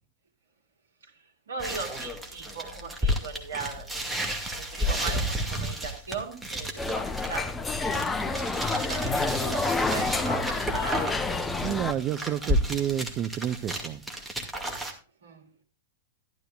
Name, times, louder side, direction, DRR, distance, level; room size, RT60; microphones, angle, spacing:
voice 1, 1.0-4.1 4.5-8.1 8.6-11.2 15.2-15.5, right 5 dB, 70° right, 2.4 m, -38 dB
sound 1, 1.6-14.9, equal, 5° right, 2.2 m, -32 dB
sound 2, 6.8-11.9, left 3 dB, 10° left, 0.8 m, -28 dB
voice 2, 11.6-14.0, right 11 dB, 30° right, 0.5 m, -30 dB
13.5 x 12.5 x 2.4 m
figure-of-eight pair, 100°, 0 cm